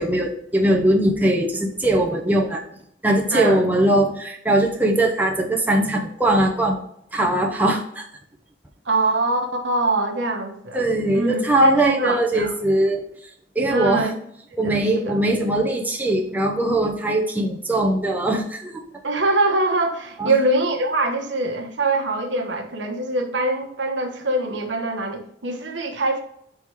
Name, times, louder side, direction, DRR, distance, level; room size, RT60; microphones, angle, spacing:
voice 1, 0.0-2.6 3.0-6.8 7.1-8.1 10.7-13.0 13.6-14.1 14.6-18.8 20.2-20.3, right 1 dB, 10° right, 0 dB, 0.7 m, -20 dB
voice 2, 3.3-3.6 8.8-10.8 11.1-12.5 13.7-14.1 14.6-15.1 19.0-26.2, right 2 dB, 70° right, 2 dB, 1.1 m, -23 dB
6.0 x 3.7 x 4.6 m, 0.71 s
head